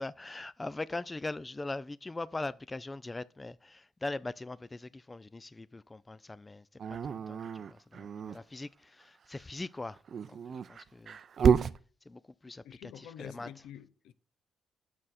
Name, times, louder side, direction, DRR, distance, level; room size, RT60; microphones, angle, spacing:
voice 1, 0.0-6.7 7.1-10.0 10.3-11.2 12.1-13.5, left 2 dB, 20° left, 0.3 m, -41 dB
Dog, 6.8-8.4 10.0-11.8, right 7 dB, 55° right, 0.5 m, -29 dB
voice 2, 12.6-14.1, left 10 dB, 85° left, 0.5 m, -48 dB
8.8 x 6.3 x 4.1 m
cardioid pair, 90°, 0 cm